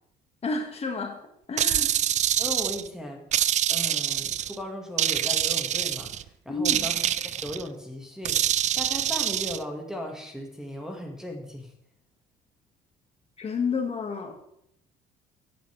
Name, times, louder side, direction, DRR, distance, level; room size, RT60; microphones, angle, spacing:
voice 1, 0.4-1.2 1.5-1.9 6.5-7.0 13.4-14.3, left 4 dB, 35° left, 3 dB, 2.1 m, -30 dB
sound 1, 1.6-2.9 3.3-4.6 5.0-6.2 6.6-7.6 8.2-9.6, right 11 dB, 45° right, 0.4 m, -25 dB
voice 2, 2.4-3.2 3.7-11.7, equal, 5° right, 2 dB, 2.0 m, -37 dB
14.5 x 9.0 x 3.5 m, 0.72 s
cardioid pair, 110°, 17 cm